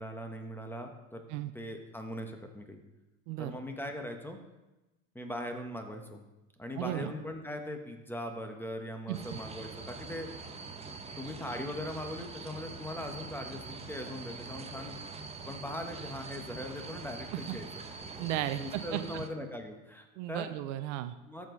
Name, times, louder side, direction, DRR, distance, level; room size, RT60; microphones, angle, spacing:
voice 1, 0.0-1.2 1.5-2.8 3.4-4.4 5.1-6.2 6.6-10.3 11.1-15.0 15.4-17.7 18.6-20.5 21.2-21.5, left 1 dB, 5° left, 4 dB, 1.3 m, -40 dB
voice 2, 3.3-3.6 6.8-7.1 9.1-9.2 18.2-19.2 20.2-21.1, right 13 dB, 60° right, 11 dB, 0.7 m, -35 dB
sound 1, 9.1-19.3, right 4 dB, 15° right, 1.0 m, -44 dB
13.5 x 5.0 x 4.0 m, 1.0 s
hypercardioid pair, 80°, 41 cm